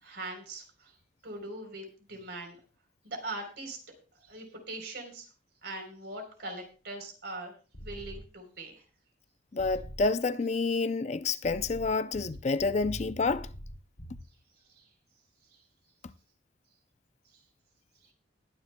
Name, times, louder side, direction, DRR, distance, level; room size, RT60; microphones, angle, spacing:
voice 1, 0.0-1.0 1.2-2.6 3.0-3.8 4.2-5.3 5.6-7.5 7.8-8.8 14.7-14.9, right 2 dB, 65° right, 3.6 m, -41 dB
sound 1, 7.7-8.2 9.6-10.1 11.4-14.2, equal, 80° left, 3.1 m, -43 dB
voice 2, 9.5-13.5, left 3 dB, 40° left, 0.4 m, -29 dB
20.5 x 10.0 x 2.2 m
head